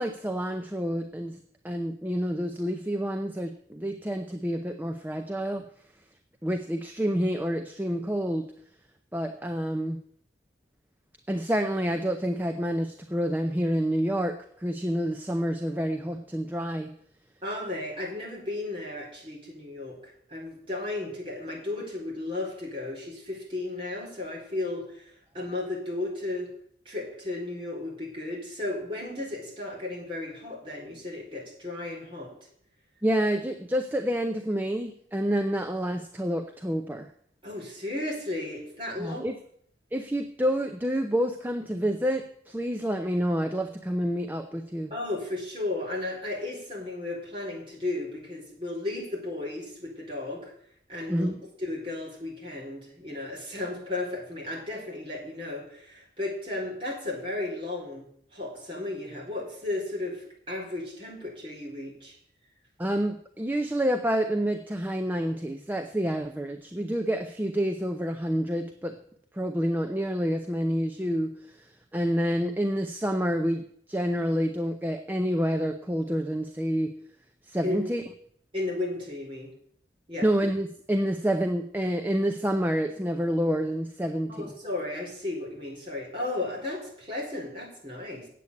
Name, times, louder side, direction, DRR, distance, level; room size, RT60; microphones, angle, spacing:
voice 1, 0.0-1.4 1.6-5.6 6.4-8.4 9.1-10.0 11.3-16.9 33.0-37.1 39.0-39.4 39.9-44.9 51.1-51.4 62.8-69.0 69.3-76.9 77.4-78.0 80.2-84.5, equal, 10° right, 5 dB, 0.6 m, -28 dB
voice 2, 17.4-26.5 26.8-32.3 37.4-39.2 44.9-50.5 50.9-58.1 58.3-62.1 77.6-77.8 78.5-79.5 80.1-80.3 84.3-88.3, left 2 dB, 30° right, -3 dB, 4.1 m, -34 dB
8.4 x 8.1 x 8.4 m, 0.64 s
head